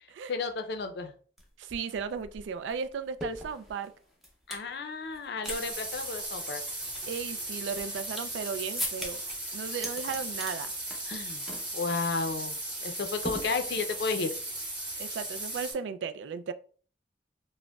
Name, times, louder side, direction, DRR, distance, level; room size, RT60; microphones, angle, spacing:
voice 1, 0.3-1.1 4.5-6.6 11.1-11.4 11.7-14.3, left 4 dB, 65° left, 0.5 m, -33 dB
sound 1, 1.4-1.5 1.7-4.7 5.1-5.6 5.8-5.9 6.5-8.4 8.8-9.3 9.7-10.6 10.9-11.2 11.5-11.7 12.0-12.3 13.2-14.0, equal, ahead, 0.6 m, -39 dB
voice 2, 1.6-3.9 7.1-9.2 9.5-10.7 15.0-16.5, right 6 dB, 90° right, 0.3 m, -35 dB
sound 2, 5.4-15.7, right 1 dB, 25° right, 1.4 m, -37 dB
5.0 x 2.1 x 2.3 m
head